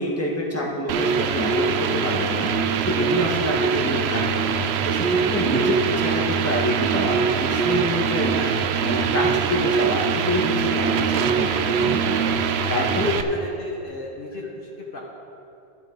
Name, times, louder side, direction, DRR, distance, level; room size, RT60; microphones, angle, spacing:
voice 1, 0.0-4.5 4.8-8.3 8.8-13.1, left 1 dB, 15° left, -3 dB, 1.4 m, -27 dB
sound 1, 0.9-13.2, right 6 dB, 80° right, 0.8 m, -23 dB
voice 2, 4.1-4.4 5.6-5.8 8.3-8.7 13.0-15.0, left 2 dB, 55° left, -3 dB, 1.5 m, -36 dB
12.0 x 11.5 x 3.8 m, 2.6 s
omnidirectional pair, 1.1 m